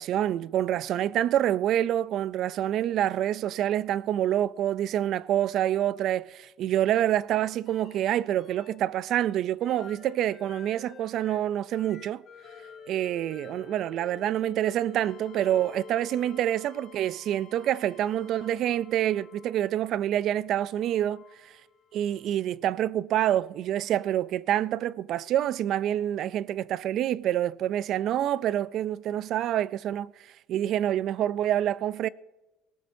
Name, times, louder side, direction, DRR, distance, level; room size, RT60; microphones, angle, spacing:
voice 1, 0.0-12.2 12.9-21.2 21.9-30.1 30.5-32.1, right 11 dB, 50° right, 0.4 m, -27 dB
sound 1, 7.7-8.7 9.1-19.8 20.7-22.3 24.0-24.1, left 6 dB, 35° left, 3.8 m, -49 dB
19.0 x 18.0 x 2.7 m
cardioid pair, 145°, 0 cm